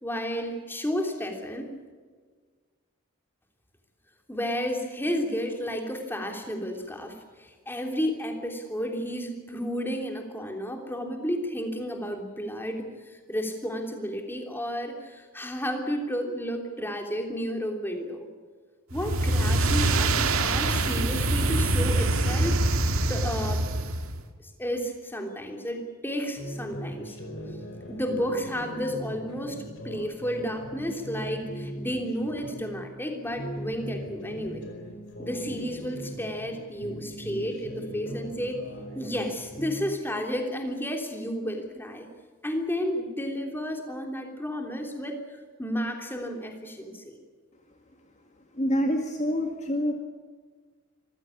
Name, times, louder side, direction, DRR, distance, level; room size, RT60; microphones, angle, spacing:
voice 1, 0.0-1.7 4.3-18.3 18.9-22.6 23.1-23.6 24.4-27.2 27.9-34.7 35.2-38.6 38.9-42.1 42.4-45.2 45.6-47.2, equal, 10° left, 3 dB, 3.2 m, -32 dB
sound 1, 18.9-24.2, right 2 dB, 85° right, 1.9 m, -24 dB
sound 2, 26.4-32.8 33.2-36.5 36.8-39.9, equal, 60° left, 5.2 m, -39 dB
voice 2, 48.6-49.9, equal, 35° left, 3 dB, 2.0 m, -26 dB
26.0 x 15.5 x 8.6 m, 1.5 s
head